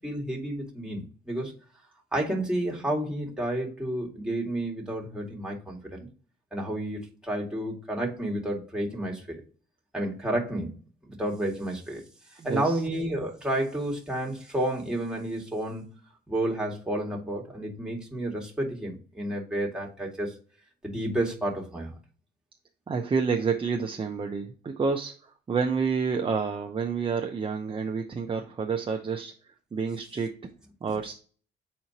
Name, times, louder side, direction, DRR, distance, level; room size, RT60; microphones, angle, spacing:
voice 1, 0.0-1.5 2.1-6.1 6.5-9.4 9.9-10.7 11.1-12.0 12.4-15.8 16.3-20.3 20.8-21.9, right 1 dB, 5° right, 2.1 m, -31 dB
voice 2, 12.4-12.8 22.9-30.3 30.8-31.1, right 5 dB, 30° right, 0.7 m, -29 dB
7.6 x 4.5 x 2.8 m
cardioid pair, 110°, 19 cm